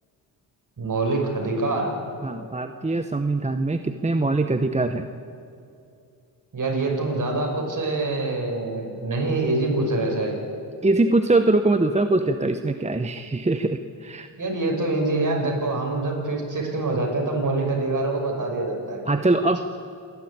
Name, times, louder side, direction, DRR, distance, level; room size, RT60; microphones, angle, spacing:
voice 1, 0.8-1.9 6.5-10.4 14.4-19.0, right 2 dB, 45° right, 1 dB, 5.8 m, -25 dB
voice 2, 2.2-5.1 10.8-14.3 19.1-19.6, right 2 dB, 15° right, 8 dB, 0.9 m, -22 dB
27.0 x 12.0 x 8.8 m, 2.6 s
cardioid pair, 75°, 43 cm